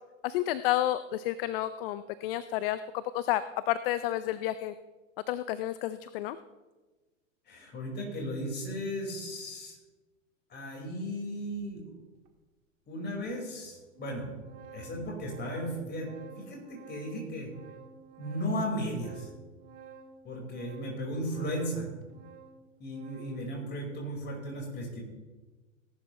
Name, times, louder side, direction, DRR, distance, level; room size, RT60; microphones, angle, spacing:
voice 1, 0.2-4.7 5.3-6.4, left 13 dB, 45° left, 15 dB, 0.5 m, -31 dB
voice 2, 7.5-9.8 10.5-11.9 12.9-14.3 14.7-16.1 16.4-17.5 18.2-19.3 20.2-21.9 22.8-25.0, equal, 25° left, -1 dB, 5.2 m, -35 dB
Organ, 12.3-12.4 13.2-13.3 13.6-23.5, right 6 dB, 50° right, 1.7 m, -52 dB
18.0 x 11.0 x 3.2 m, 1.2 s
hypercardioid pair, 100°, 40 cm